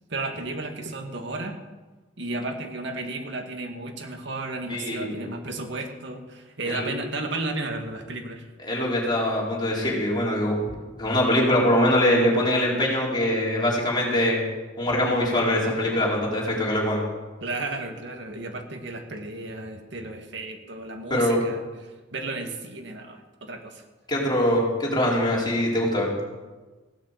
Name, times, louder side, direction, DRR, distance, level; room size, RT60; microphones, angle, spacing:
voice 1, 0.1-1.5 2.2-8.5 17.4-23.8, right 2 dB, 65° right, 4 dB, 2.3 m, -33 dB
voice 2, 4.7-5.3 6.7-6.9 8.6-10.7 11.0-14.4 14.8-17.0 21.1-21.4 24.1-26.1, left 1 dB, 25° left, -4 dB, 4.8 m, -23 dB
16.5 x 10.0 x 8.5 m, 1.3 s
head